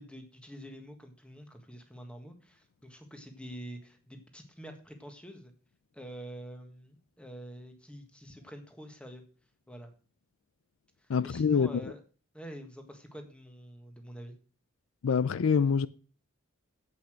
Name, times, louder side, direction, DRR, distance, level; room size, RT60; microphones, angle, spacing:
voice 1, 0.0-5.5 5.9-9.2 9.7-9.9 11.0-12.0 12.3-14.3, equal, 5° left, 1.6 m, -46 dB
voice 2, 11.1-11.8 15.0-15.9, left 6 dB, 70° left, 0.4 m, -25 dB
8.4 x 8.3 x 6.3 m
head